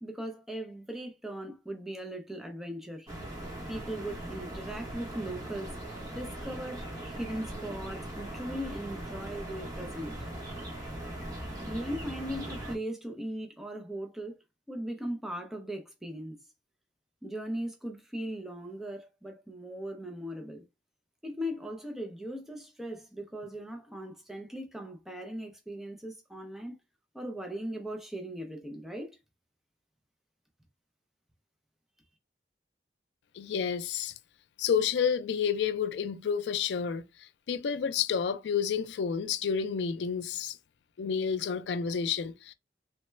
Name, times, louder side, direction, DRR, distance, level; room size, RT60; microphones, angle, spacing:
voice 1, 0.0-3.1 3.7-5.7 6.1-10.2 11.6-14.4 14.7-16.4 17.2-20.6 21.2-26.7 27.1-29.2, equal, ahead, 0.4 m, -38 dB
sound 1, 3.1-12.8, right 1 dB, 20° right, 0.8 m, -40 dB
voice 2, 33.3-34.1 34.6-40.6 41.0-42.5, left 7 dB, 75° left, 0.4 m, -30 dB
3.2 x 2.1 x 3.1 m
head